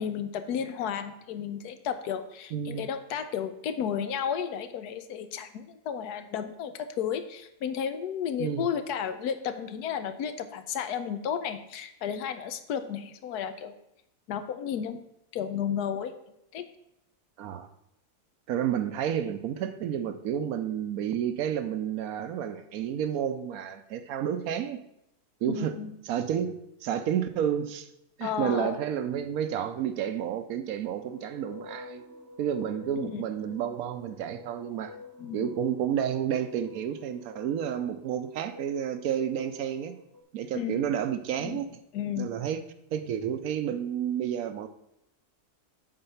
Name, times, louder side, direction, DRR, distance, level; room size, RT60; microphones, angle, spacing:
voice 1, 0.0-13.7 14.3-15.0 15.3-16.1 16.5-16.6 25.4-25.9 28.2-28.8 33.0-33.2 33.5-33.6 35.2-35.5 40.5-40.8 41.4-41.6 41.9-42.3, left 8 dB, 85° left, 10 dB, 1.2 m, -33 dB
voice 2, 2.5-2.9 8.4-8.7 17.4-17.7 18.5-24.8 25.4-25.8 26.1-26.5 26.8-27.9 28.2-32.0 32.4-35.0 35.3-40.0 40.3-41.7 42.2-42.6 42.9-44.7, right 9 dB, 70° right, 10 dB, 1.0 m, -30 dB
sound 1, 30.9-40.2, left 4 dB, 15° right, 0.8 m, -49 dB
7.6 x 4.5 x 5.6 m, 0.82 s
omnidirectional pair, 1.6 m